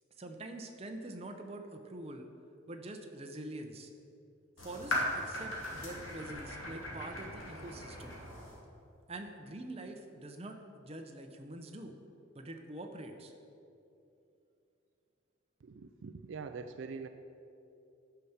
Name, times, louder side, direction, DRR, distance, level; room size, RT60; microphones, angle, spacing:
voice 1, 0.2-2.3 2.7-3.9 4.6-8.2 9.1-11.9 12.3-13.3, right 1 dB, 30° right, 4 dB, 0.7 m, -45 dB
sound 1, 4.6-8.6, left 1 dB, 75° left, 2.4 m, -39 dB
voice 2, 15.6-17.1, right 5 dB, 65° right, 8 dB, 0.4 m, -43 dB
9.9 x 5.8 x 7.1 m, 2.7 s
head